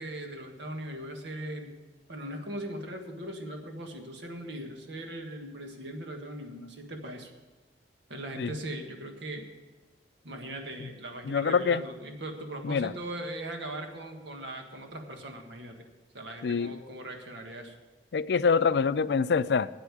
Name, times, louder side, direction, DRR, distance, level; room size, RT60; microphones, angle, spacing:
voice 1, 0.0-1.7 2.1-7.3 8.1-9.4 10.2-15.8 16.1-17.7, right 1 dB, 85° right, 4 dB, 1.6 m, -39 dB
voice 2, 11.3-11.8 12.6-12.9 16.4-16.7 18.1-19.7, left 5 dB, 70° left, 16 dB, 0.4 m, -25 dB
8.7 x 8.2 x 8.5 m, 1.2 s
head